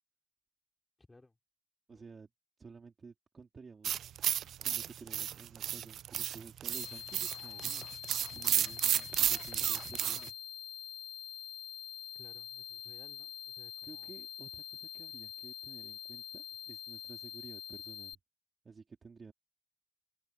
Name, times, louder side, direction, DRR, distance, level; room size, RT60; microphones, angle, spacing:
voice 1, 1.0-1.4 1.9-2.1 12.1-14.1, left 2 dB, 15° left, 5.2 m, -61 dB
voice 2, 1.9-2.3 2.6-4.1 4.6-7.9 8.3-10.3 13.8-18.2 18.6-19.3, right 5 dB, 35° right, 3.5 m, -53 dB
sound 1, 3.8-10.3, right 10 dB, 70° right, 0.4 m, -33 dB
sound 2, 6.7-18.1, left 10 dB, 75° left, 2.8 m, -45 dB
cardioid pair, 90°, 0 cm